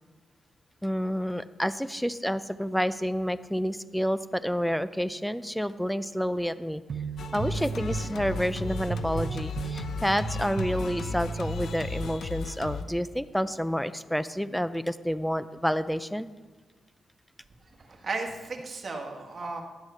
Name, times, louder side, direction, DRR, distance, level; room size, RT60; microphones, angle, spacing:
voice 1, 0.8-6.8 7.3-16.3, equal, ahead, 14 dB, 0.5 m, -29 dB
sound 1, 6.9-12.2, right 6 dB, 60° right, 0.5 m, -35 dB
Singing, 7.2-12.8, left 5 dB, 75° left, 0.8 m, -36 dB
voice 2, 17.8-19.6, right 3 dB, 45° right, 2 dB, 1.8 m, -35 dB
11.5 x 7.8 x 5.7 m, 1.4 s
cardioid pair, 85°, 0 cm